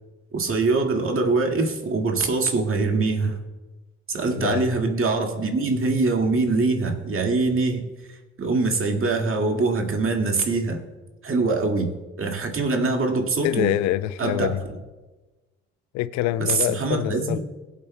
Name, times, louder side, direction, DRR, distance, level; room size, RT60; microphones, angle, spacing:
voice 1, 0.3-3.4 4.1-7.8 8.1-10.8 11.2-11.9 12.2-13.7 14.2-14.5 16.4-17.4, right 3 dB, 45° right, 2.0 m, -23 dB
voice 2, 4.3-4.7 13.4-14.6 15.9-17.4, left 14 dB, 75° left, 0.5 m, -25 dB
20.5 x 8.3 x 2.2 m
hypercardioid pair, 50°, 29 cm